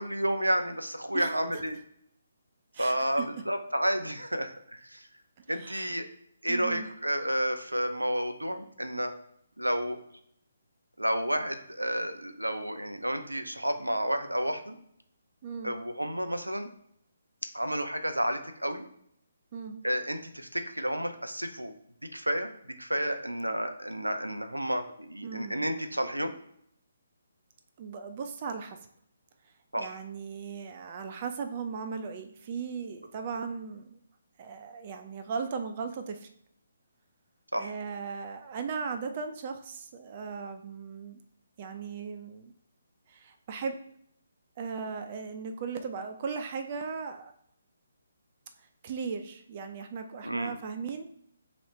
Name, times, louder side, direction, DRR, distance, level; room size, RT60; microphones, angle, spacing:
voice 1, 0.0-1.8 2.8-5.1 5.5-6.1 6.4-9.1 9.6-10.0 11.0-14.8 15.6-16.7 17.5-18.9 19.8-21.7 22.1-22.5 22.8-26.3 29.7-30.0 37.5-37.7 50.2-50.6, equal, 85° right, 8 dB, 0.6 m, -31 dB
voice 2, 2.7-3.2 5.5-5.9 6.5-6.9 15.4-15.7 19.5-19.8 25.2-25.7 27.8-28.8 29.4-34.0 34.4-36.3 37.5-41.2 41.6-42.5 43.1-43.8 44.6-47.3 48.6-51.0, right 5 dB, 35° right, 6 dB, 0.5 m, -37 dB
3.9 x 3.1 x 4.4 m, 0.70 s
figure-of-eight pair, 140°, 0 cm